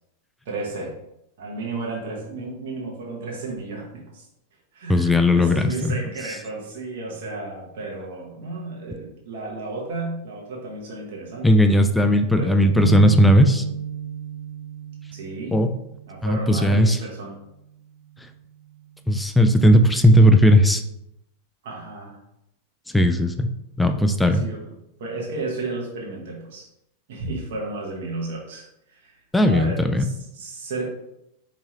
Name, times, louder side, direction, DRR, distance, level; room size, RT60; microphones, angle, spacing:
voice 1, 0.5-0.9 1.4-4.3 4.7-11.5 12.3-12.5 15.1-15.7 16.1-17.4 21.6-22.2 24.3-24.7 25.0-26.7 27.1-30.9, right 3 dB, 55° right, -2 dB, 0.9 m, -33 dB
voice 2, 4.9-5.9 11.4-13.6 15.5-15.7 16.2-17.0 19.1-20.8 22.9-23.5 23.8-24.4 29.3-30.0, equal, 5° left, 7 dB, 0.3 m, -17 dB
sound 1, 12.8-16.3, right 6 dB, 65° left, 0.7 m, -31 dB
4.5 x 2.9 x 2.8 m, 0.84 s
figure-of-eight pair, 90°, 0 cm